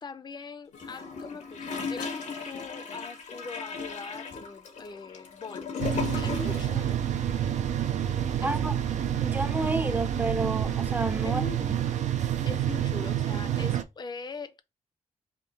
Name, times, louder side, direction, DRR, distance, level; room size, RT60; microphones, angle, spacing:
voice 1, 0.0-5.7 6.1-7.4 8.4-9.1 11.2-11.6 12.4-14.6, left 5 dB, 35° left, 0.5 m, -42 dB
Gurgling / Toilet flush, 0.7-6.8 7.1-7.2, left 5 dB, 90° left, 1.1 m, -36 dB
sound 1, 5.8-13.8, right 10 dB, 75° right, 0.5 m, -28 dB
voice 2, 8.4-8.7 9.2-11.4 11.7-11.8, right 2 dB, 15° right, 0.5 m, -30 dB
3.7 x 2.7 x 4.0 m
wide cardioid pair, 115°, 12 cm